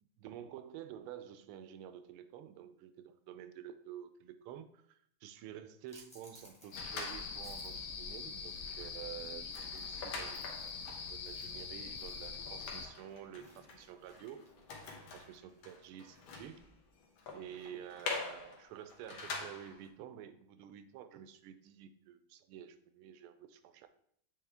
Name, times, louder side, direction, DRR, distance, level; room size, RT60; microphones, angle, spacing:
voice 1, 0.2-10.7 11.1-14.5 15.1-16.6 17.3-23.9, right 10 dB, 85° right, 11 dB, 1.5 m, -50 dB
sound 1, 5.9-16.5, equal, 5° left, 0.9 m, -64 dB
sound 2, 6.7-12.9, left 5 dB, 80° left, 0.7 m, -43 dB
sound 3, 6.7-7.7 8.1-8.3 8.6-19.9, left 4 dB, 65° left, 1.6 m, -46 dB
8.1 x 3.4 x 3.4 m, 0.67 s
omnidirectional pair, 2.4 m